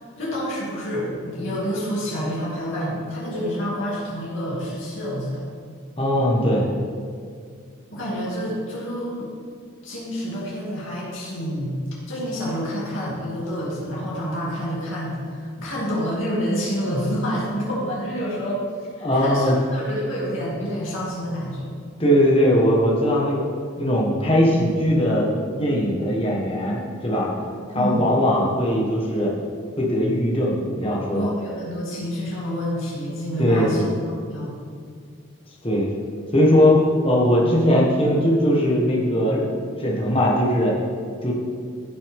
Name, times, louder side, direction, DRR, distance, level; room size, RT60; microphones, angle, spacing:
voice 1, 0.2-5.4 7.9-9.3 9.8-11.8 12.1-18.6 19.0-21.8 27.7-28.1 31.1-34.6, equal, 70° left, -7 dB, 2.7 m, -28 dB
voice 2, 6.0-6.6 19.0-19.5 22.0-23.5 23.8-25.3 25.6-27.3 27.7-29.3 29.8-31.3 33.4-33.9 35.6-35.9 36.3-40.8 41.2-41.3, equal, 25° left, -4 dB, 1.5 m, -20 dB
15.0 x 6.5 x 3.7 m, 2.1 s
head